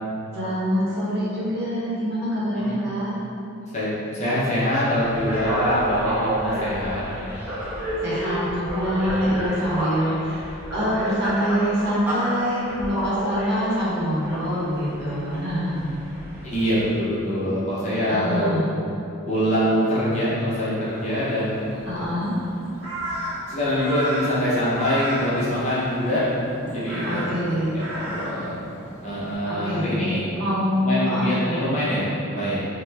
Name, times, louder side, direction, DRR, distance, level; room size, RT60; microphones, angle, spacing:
voice 1, 0.3-3.1 8.0-15.9 18.1-18.6 21.9-22.4 27.0-27.7 29.4-29.9 30.4-31.3, equal, 50° right, -9 dB, 0.8 m, -25 dB
voice 2, 3.7-7.0 9.2-9.3 16.4-18.5 19.3-21.6 23.5-26.2 26.6-27.2 27.9-28.6 29.0-30.2 30.8-32.7, equal, 35° left, -9 dB, 0.6 m, -24 dB
sound 1, 5.0-16.9, right 1 dB, 10° right, 0.4 m, -30 dB
Crow, 20.9-29.4, right 1 dB, 85° right, 0.6 m, -35 dB
2.9 x 2.1 x 3.2 m, 2.7 s
head